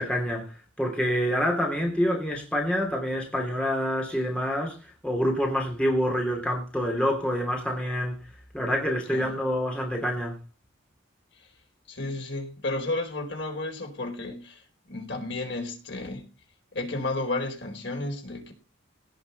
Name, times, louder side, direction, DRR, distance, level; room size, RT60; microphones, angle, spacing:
voice 1, 0.0-4.8 5.0-8.2 8.5-10.4, equal, 5° left, 3.1 m, -27 dB
voice 2, 11.9-16.3 16.7-18.5, left 2 dB, 60° left, 4.3 m, -32 dB
17.5 x 5.9 x 5.4 m
head